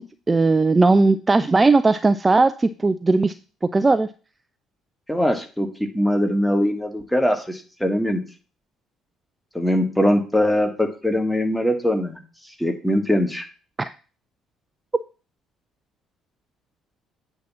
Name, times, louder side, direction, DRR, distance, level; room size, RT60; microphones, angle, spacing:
voice 1, 0.0-3.3 3.7-4.1 13.8-13.9, right 3 dB, 20° right, 12 dB, 0.4 m, -18 dB
voice 2, 5.1-5.7 5.9-8.2 9.5-12.2 12.6-13.4, equal, 5° left, 5 dB, 1.5 m, -21 dB
8.4 x 2.9 x 6.1 m, 0.36 s
figure-of-eight pair, 50°, 0 cm